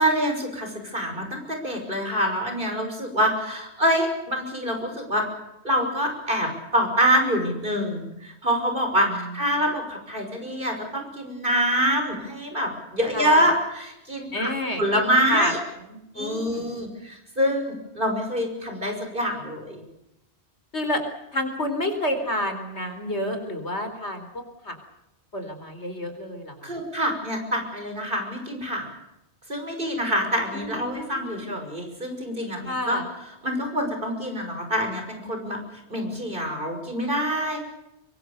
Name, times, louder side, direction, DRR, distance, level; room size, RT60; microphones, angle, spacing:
voice 1, 0.0-5.3 5.6-14.5 14.8-15.6 16.1-19.8 26.6-28.9 29.5-33.0 33.4-37.6, equal, 50° right, 4 dB, 6.3 m, -25 dB
voice 2, 13.1-13.5 14.3-15.5 16.1-16.8 20.7-21.0 21.3-24.8 25.3-26.8 30.5-31.6 32.6-33.0, left 1 dB, 75° left, 7 dB, 4.5 m, -29 dB
24.5 x 23.5 x 6.8 m, 0.89 s
omnidirectional pair, 1.2 m